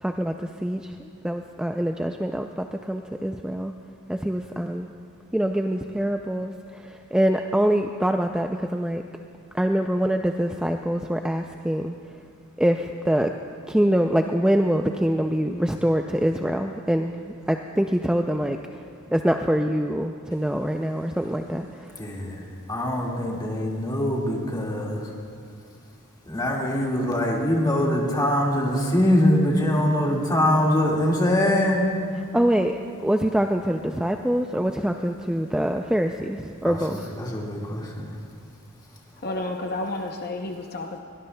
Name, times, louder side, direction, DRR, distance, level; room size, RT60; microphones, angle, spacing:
voice 1, 0.0-3.7 4.1-4.9 5.3-9.0 9.5-11.9 12.6-13.3 13.7-18.8 19.1-22.0 32.3-37.2, equal, 5° right, 4 dB, 0.3 m, -25 dB
voice 2, 22.0-22.4 22.7-25.1 26.3-31.8 36.7-38.1, left 1 dB, 20° left, -2 dB, 1.9 m, -23 dB
voice 3, 39.1-41.0, left 2 dB, 45° left, 3 dB, 0.7 m, -31 dB
22.0 x 18.5 x 2.2 m, 2.2 s
head